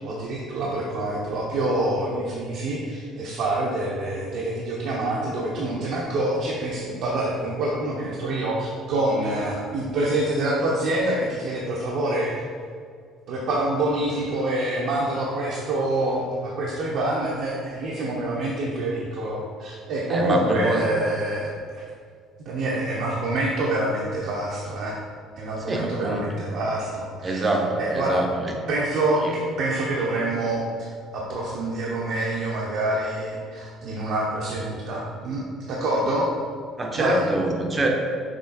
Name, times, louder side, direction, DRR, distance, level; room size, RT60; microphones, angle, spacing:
voice 1, 0.0-12.3 13.3-21.8 22.4-25.0 25.4-27.5 27.8-28.2 28.7-36.3 36.9-37.2, right 1 dB, 65° right, -4 dB, 0.9 m, -26 dB
voice 2, 20.1-20.9 25.7-26.5 27.2-28.6 29.2-29.3 36.8-37.9, right 2 dB, 25° right, 2 dB, 0.8 m, -25 dB
6.3 x 3.6 x 4.2 m, 2.1 s
cardioid pair, 125°, 0 cm